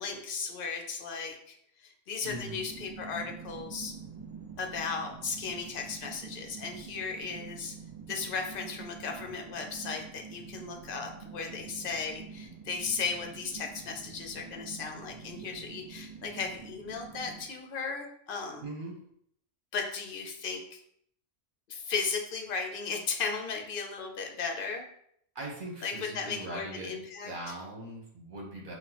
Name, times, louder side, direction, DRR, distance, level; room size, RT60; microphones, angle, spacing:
voice 1, 0.0-3.9 4.6-7.7 8.1-18.7 19.7-20.8 21.7-24.9 25.8-27.5, left 5 dB, 55° left, 3 dB, 0.8 m, -36 dB
sound 1, 2.2-17.5, right 5 dB, 25° right, 0.6 m, -46 dB
voice 2, 2.2-2.6 18.6-19.0 25.3-28.7, right 2 dB, 45° right, -2 dB, 1.3 m, -41 dB
5.8 x 2.5 x 3.0 m, 0.68 s
omnidirectional pair, 1.2 m